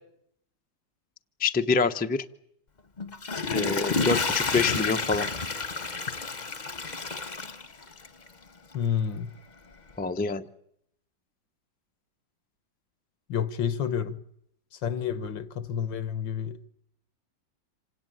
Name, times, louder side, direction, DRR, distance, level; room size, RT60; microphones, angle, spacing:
voice 1, 1.4-2.2 3.5-5.3 10.0-10.4, left 4 dB, 15° left, 0.3 m, -26 dB
Water / Toilet flush, 3.0-8.3 8.7-8.8, left 4 dB, 30° left, 0.9 m, -30 dB
voice 2, 8.7-9.3 13.3-14.2 14.7-16.7, left 8 dB, 90° left, 2.0 m, -29 dB
27.0 x 17.5 x 9.2 m
omnidirectional pair, 2.0 m